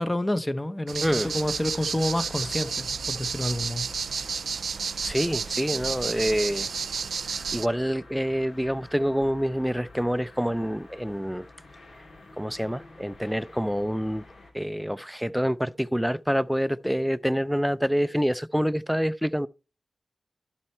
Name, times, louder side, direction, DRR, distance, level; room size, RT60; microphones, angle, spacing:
voice 1, 0.0-4.0, left 1 dB, 15° left, 0.9 m, -29 dB
sound 1, 0.9-7.7, right 6 dB, 85° right, 0.4 m, -31 dB
sound 2, 1.2-14.5, left 2 dB, 80° left, 2.4 m, -49 dB
voice 2, 5.0-6.7 7.5-11.5 12.4-14.2 14.5-19.5, equal, ahead, 0.4 m, -26 dB
12.0 x 4.4 x 4.3 m
wide cardioid pair, 75°, 0 cm